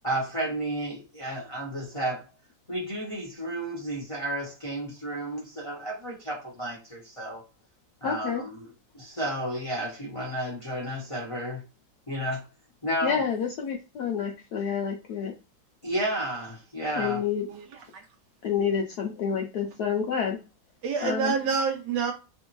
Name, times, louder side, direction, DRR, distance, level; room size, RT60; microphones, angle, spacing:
voice 1, 0.0-2.2 2.7-7.4 8.0-8.5 8.9-11.6 12.1-12.4 12.8-13.2 15.8-17.2, right 1 dB, 30° left, 0.6 m, -32 dB
voice 2, 8.0-8.4 13.0-15.3 17.0-17.5 18.4-20.4 21.0-21.3, left 7 dB, 75° left, 0.9 m, -28 dB
voice 3, 17.5-17.8 20.8-22.1, right 5 dB, 75° right, 1.0 m, -27 dB
3.5 x 2.5 x 2.9 m
omnidirectional pair, 2.2 m